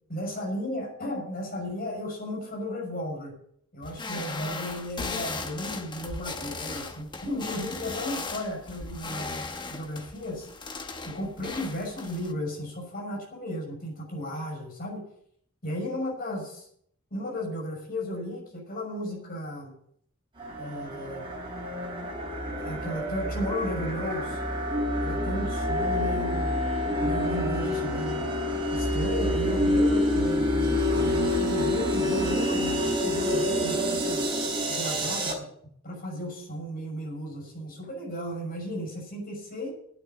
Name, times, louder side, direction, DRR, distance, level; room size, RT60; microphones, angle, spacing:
voice 1, 0.1-3.4 3.7-10.5 11.0-15.0 15.6-16.7 17.1-19.7 20.6-21.3 22.6-24.4 25.0-28.3 28.7-34.3 34.7-35.5 35.8-39.7, left 1 dB, 50° left, 0 dB, 6.1 m, -34 dB
sound 1, 3.8-12.3, left 3 dB, 25° left, 1.1 m, -37 dB
sound 2, 20.4-35.3, left 1 dB, 25° right, 3.9 m, -27 dB
9.6 x 8.9 x 9.2 m, 0.67 s
head